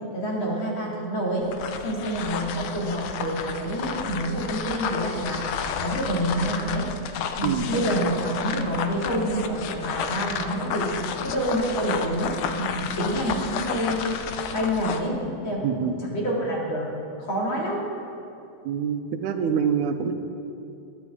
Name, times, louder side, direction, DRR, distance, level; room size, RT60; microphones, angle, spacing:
voice 1, 0.1-1.5 1.8-6.9 7.3-16.9 17.2-17.8, equal, 45° left, -4 dB, 3.0 m, -27 dB
sound 1, 1.4-15.1, left 7 dB, 80° left, 1.3 m, -32 dB
voice 2, 15.6-16.0 18.6-20.1, right 7 dB, 90° right, 8 dB, 2.2 m, -25 dB
20.0 x 12.0 x 3.7 m, 2.6 s
omnidirectional pair, 3.4 m